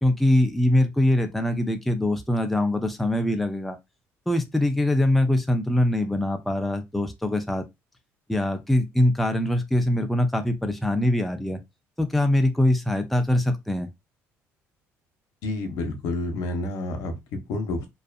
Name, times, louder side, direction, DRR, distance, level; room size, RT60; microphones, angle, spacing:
voice 1, 0.0-3.8 4.3-7.6 8.3-11.6 12.0-13.9, left 1 dB, ahead, 0.3 m, -23 dB
voice 2, 15.4-17.9, left 2 dB, 85° left, 0.7 m, -29 dB
2.5 x 2.4 x 2.2 m
cardioid pair, 130°, 6 cm